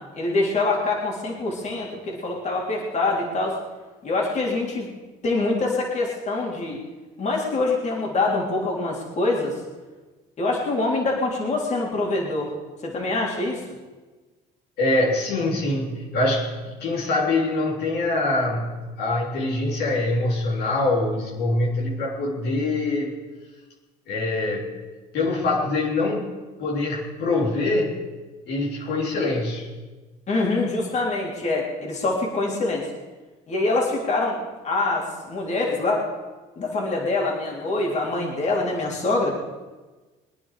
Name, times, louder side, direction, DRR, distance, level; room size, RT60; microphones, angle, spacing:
voice 1, 0.0-3.6 4.0-4.9 5.2-6.8 7.2-9.6 10.4-12.5 12.8-13.8 30.3-32.9 33.5-34.4 34.6-36.1 36.6-39.3, left 2 dB, 45° left, -2 dB, 3.7 m, -25 dB
voice 2, 14.8-23.1 24.1-24.8 25.1-26.3 26.6-27.9 28.5-29.7, left 2 dB, 70° left, -4 dB, 3.6 m, -24 dB
23.0 x 9.7 x 5.0 m, 1.3 s
cardioid pair, 110°, 17 cm